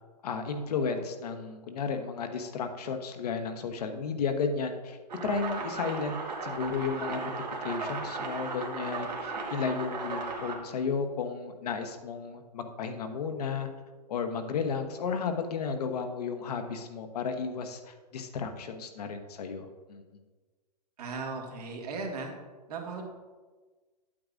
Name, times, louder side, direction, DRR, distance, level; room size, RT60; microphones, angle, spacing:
voice 1, 0.2-7.3 7.6-13.7 14.1-20.0, left 5 dB, 70° left, 6 dB, 1.0 m, -33 dB
sound 1, 5.1-10.6, right 3 dB, 85° right, 1.5 m, -36 dB
voice 2, 21.0-22.3 22.7-23.1, right 4 dB, 70° right, 1 dB, 1.8 m, -36 dB
8.8 x 8.6 x 2.5 m, 1.3 s
hypercardioid pair, 125°, 21 cm